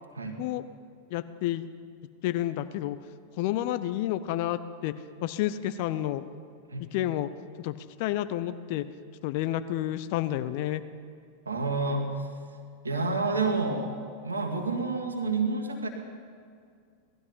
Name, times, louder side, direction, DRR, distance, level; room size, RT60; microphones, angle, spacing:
voice 1, 1.1-1.7 2.2-3.0 3.4-4.9 5.2-6.3 6.9-7.3 7.6-8.9 9.2-10.8, left 13 dB, 45° left, 13 dB, 0.6 m, -30 dB
voice 2, 11.4-12.3 12.8-15.9, right 3 dB, 75° right, 3 dB, 1.6 m, -29 dB
18.0 x 12.5 x 5.6 m, 2.1 s
figure-of-eight pair, 90°, 0 cm